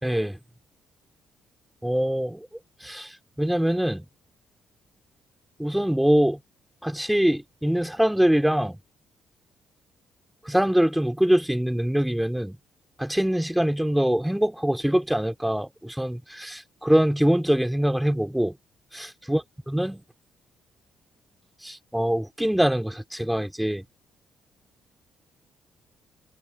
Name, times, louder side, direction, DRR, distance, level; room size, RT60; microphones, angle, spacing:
voice 1, 0.0-0.4 1.8-2.5 2.8-3.1 3.4-4.1 5.6-6.4 6.8-8.8 10.5-12.6 13.0-18.6 18.9-19.4 19.7-20.0 21.6-23.8, equal, 5° right, 2.7 m, -23 dB
cardioid pair, 90°, 0 cm